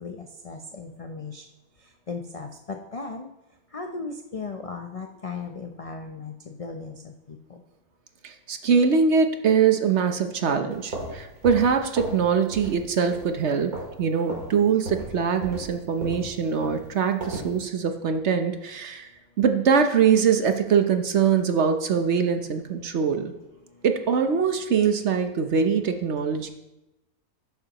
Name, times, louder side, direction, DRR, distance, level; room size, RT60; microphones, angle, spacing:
voice 1, 0.0-1.4 2.1-3.3 3.7-7.4, left 4 dB, 60° left, 3 dB, 0.3 m, -36 dB
voice 2, 8.2-13.7 14.0-19.1 19.4-23.3 23.8-26.5, right 6 dB, 55° right, 7 dB, 0.9 m, -23 dB
sound 1, 10.7-12.2 12.5-12.8 13.1-14.0 14.3-14.5 14.8-17.5, right 2 dB, 75° right, 2.5 m, -35 dB
11.5 x 8.9 x 2.9 m, 0.97 s
omnidirectional pair, 1.6 m